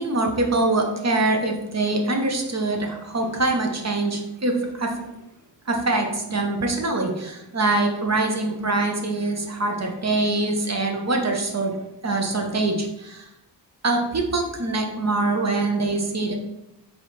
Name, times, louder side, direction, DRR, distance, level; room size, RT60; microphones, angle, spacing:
voice 1, 0.0-5.0 5.7-13.3 13.8-16.3, right 2 dB, 40° right, 3 dB, 0.7 m, -24 dB
4.4 x 3.4 x 3.0 m, 0.88 s
wide cardioid pair, 100°, 42 cm